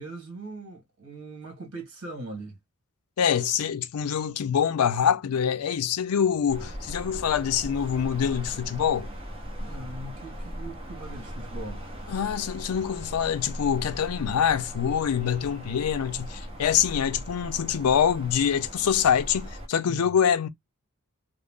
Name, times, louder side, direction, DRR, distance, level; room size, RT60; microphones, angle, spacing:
voice 1, 0.0-2.6 9.6-11.9 19.8-20.1, right 2 dB, 60° right, 1.4 m, -40 dB
voice 2, 3.2-9.1 12.1-20.5, left 8 dB, 90° left, 0.4 m, -25 dB
sound 1, 6.5-19.7, equal, 25° right, 0.7 m, -38 dB
2.4 x 2.0 x 3.4 m
head